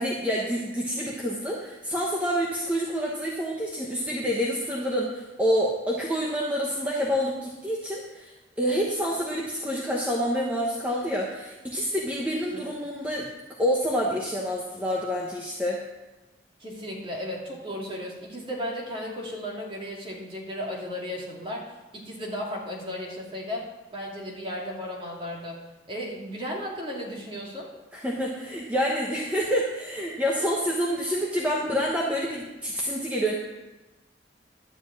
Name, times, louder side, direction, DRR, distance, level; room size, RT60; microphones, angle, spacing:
voice 1, 0.0-8.3 8.6-13.3 13.6-15.8 27.9-33.3, equal, 10° right, -3 dB, 1.1 m, -27 dB
voice 2, 16.6-21.6 21.9-23.6 23.9-25.6 25.9-27.7 30.4-30.5, equal, 30° right, -2 dB, 2.5 m, -35 dB
12.0 x 5.1 x 8.3 m, 1.1 s
head